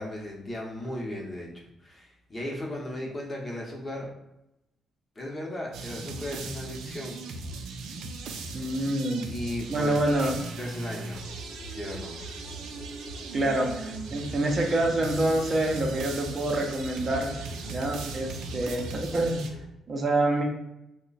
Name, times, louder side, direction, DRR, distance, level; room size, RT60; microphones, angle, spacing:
voice 1, 0.0-1.5 1.8-4.1 5.2-7.2 9.3-10.0 10.6-11.2 11.7-12.2, left 1 dB, 30° left, -1 dB, 0.9 m, -36 dB
sound 1, 5.7-19.5, right 3 dB, 85° right, 0.4 m, -39 dB
voice 2, 8.5-9.3 9.7-10.3 13.3-17.3 17.7-19.4 19.9-20.4, right 1 dB, 40° right, 1 dB, 0.6 m, -27 dB
sound 2, 11.1-19.7, right 1 dB, 85° left, 0.6 m, -43 dB
2.9 x 2.2 x 4.0 m, 0.85 s
cardioid pair, 90°, 0 cm